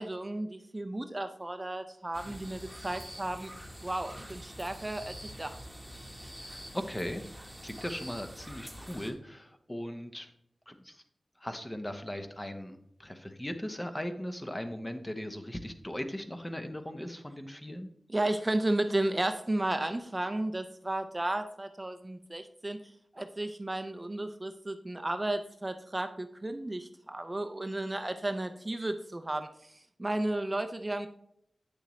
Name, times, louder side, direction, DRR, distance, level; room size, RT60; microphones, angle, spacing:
voice 1, 0.0-3.5 3.8-5.6 18.1-31.1, right 1 dB, 25° right, 7 dB, 0.5 m, -33 dB
sound 1, 2.1-9.1, equal, ahead, 1.4 m, -46 dB
voice 2, 6.4-10.3 10.7-11.0 11.4-17.9, equal, 15° left, 7 dB, 0.8 m, -39 dB
8.3 x 6.5 x 3.1 m, 0.71 s
wide cardioid pair, 70°, 0 cm